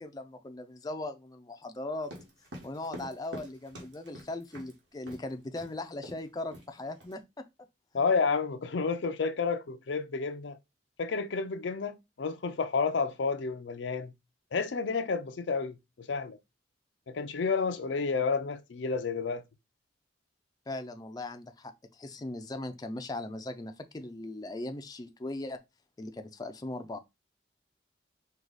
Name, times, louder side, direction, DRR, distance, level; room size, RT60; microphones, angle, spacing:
voice 1, 0.0-2.1 2.6-7.5 7.9-8.1 20.7-25.6 26.0-27.0, left 2 dB, 20° left, 0.4 m, -39 dB
sound 1, 2.0-4.7 5.1-5.2 5.6-5.7 6.0-6.3 6.5-7.1, equal, 80° right, 1.5 m, -45 dB
voice 2, 7.9-10.6 11.0-14.1 14.5-16.4 17.1-19.4, left 4 dB, 80° left, 0.5 m, -30 dB
4.7 x 2.4 x 3.9 m
head